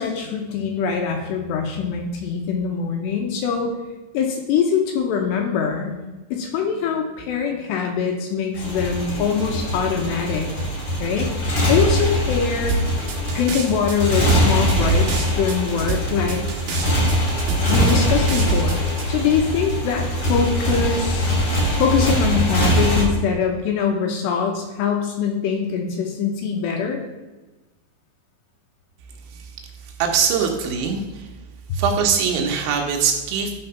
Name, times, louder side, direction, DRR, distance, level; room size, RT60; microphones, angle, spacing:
voice 1, 0.0-3.7 4.1-6.0 6.3-10.5 11.0-12.8 13.3-16.4 17.7-18.8 19.1-21.3 21.8-27.0 31.7-31.8, left 6 dB, 80° left, 2 dB, 2.6 m, -23 dB
Motorcycle, 8.5-23.0, equal, 40° left, 2.0 m, -22 dB
sound 1, 12.7-19.0, right 4 dB, 55° right, 2.8 m, -25 dB
voice 2, 29.8-31.3 31.7-33.6, right 6 dB, 75° right, 2 dB, 3.1 m, -22 dB
12.5 x 4.5 x 5.6 m, 1.1 s
omnidirectional pair, 5.8 m